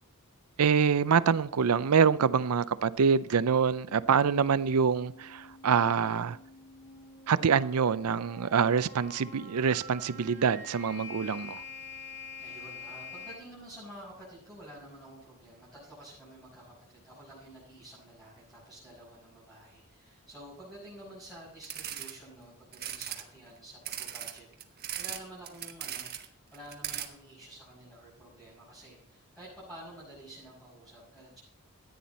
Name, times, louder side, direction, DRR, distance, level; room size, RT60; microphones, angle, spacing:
voice 1, 0.6-6.4 7.3-11.6, right 6 dB, 80° right, 0.5 m, -25 dB
sound 1, 3.7-13.3, left 3 dB, 35° left, 2.3 m, -47 dB
voice 2, 12.4-31.4, right 1 dB, ahead, 6.3 m, -50 dB
sound 2, 21.6-22.1 22.7-23.2 23.8-25.2 25.5-26.2 26.5-27.1, right 10 dB, 45° right, 1.3 m, -38 dB
14.0 x 9.5 x 4.2 m
head